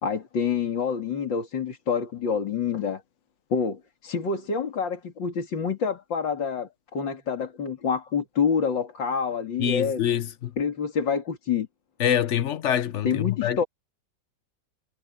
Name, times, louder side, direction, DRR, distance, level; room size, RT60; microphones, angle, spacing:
voice 1, 0.0-3.0 3.5-10.0 10.6-11.7 13.0-13.6, left 6 dB, 85° left, 3.2 m, -27 dB
voice 2, 9.6-10.5 12.0-13.6, left 9 dB, 50° left, 1.0 m, -25 dB
omnidirectional pair, 2.0 m